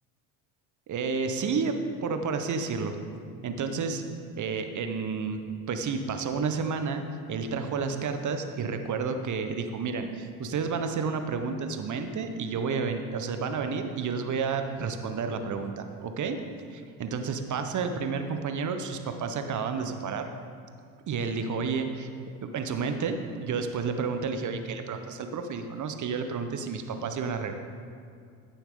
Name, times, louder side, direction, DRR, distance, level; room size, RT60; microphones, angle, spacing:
voice 1, 0.9-2.9 3.4-4.0 4.4-5.4 5.7-7.0 7.3-16.4 16.7-20.3 21.1-22.1 22.4-27.5, right 5 dB, 40° right, 7 dB, 1.1 m, -31 dB
15.0 x 7.0 x 3.9 m, 2.3 s
hypercardioid pair, 70°, 45 cm